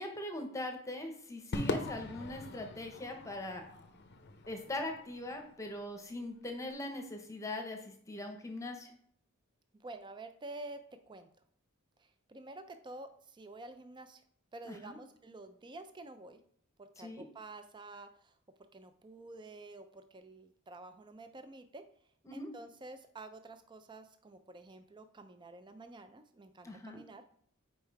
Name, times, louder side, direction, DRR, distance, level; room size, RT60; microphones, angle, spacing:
voice 1, 0.0-3.6 4.5-8.9 14.7-15.0 17.0-17.2 22.2-22.5 26.6-27.0, left 1 dB, 15° left, 4 dB, 0.8 m, -41 dB
Crowd / Fireworks, 1.5-6.0, left 2 dB, 50° left, 0.6 m, -41 dB
voice 2, 9.8-10.8 11.1-11.3 12.0-14.2 14.5-16.4 16.8-18.3 18.7-21.8 22.3-27.2, right 2 dB, 20° right, 9 dB, 0.4 m, -49 dB
5.3 x 4.5 x 4.6 m, 0.63 s
head